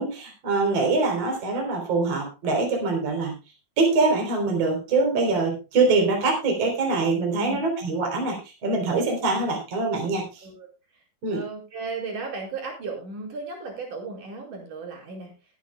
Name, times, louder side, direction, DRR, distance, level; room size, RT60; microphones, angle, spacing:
voice 1, 0.0-3.3 3.8-10.4 11.2-11.4, right 3 dB, 45° right, 2 dB, 4.5 m, -24 dB
voice 2, 11.3-15.3, right 4 dB, 60° right, 0 dB, 6.2 m, -35 dB
20.0 x 10.5 x 2.2 m, 0.29 s
omnidirectional pair, 4.2 m